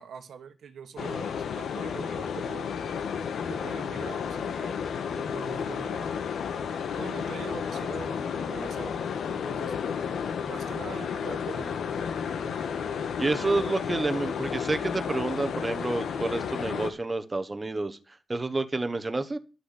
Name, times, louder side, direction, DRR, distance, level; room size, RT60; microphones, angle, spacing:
voice 1, 0.0-2.7 3.5-4.8 5.1-6.1 7.0-9.0 9.4-9.7 10.4-11.8 12.3-12.6, right 7 dB, 80° right, 1.4 m, -43 dB
sound 1, 1.0-16.9, left 7 dB, 85° left, 1.5 m, -32 dB
voice 2, 13.2-18.0 18.3-19.4, right 2 dB, 20° right, 1.2 m, -29 dB
11.5 x 6.2 x 8.4 m
wide cardioid pair, 120°, 0 cm